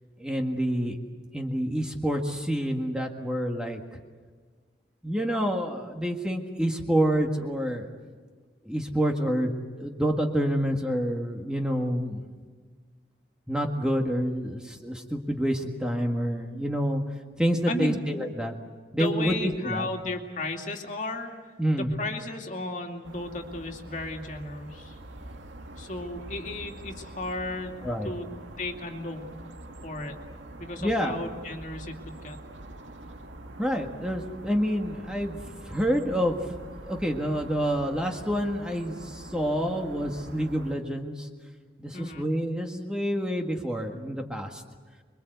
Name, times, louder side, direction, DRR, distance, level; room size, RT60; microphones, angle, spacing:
voice 1, 0.2-1.0 1.3-3.8 5.0-7.9 8.7-9.5 9.8-12.2 13.5-17.0 17.4-18.5 18.9-19.9 21.6-21.9 27.8-28.1 30.8-31.2 33.6-35.4 35.7-36.4 36.9-41.3 41.8-44.6, equal, 5° right, 2 dB, 1.7 m, -28 dB
voice 2, 17.7-18.0 18.9-21.3 21.8-25.0 25.8-27.7 28.0-28.3 28.6-29.3 29.8-30.2 30.6-32.4 41.9-42.3, left 2 dB, 40° left, 3 dB, 2.5 m, -34 dB
sound 1, 23.0-40.8, right 1 dB, 90° right, 2.0 m, -44 dB
26.5 x 23.5 x 8.1 m, 1.5 s
head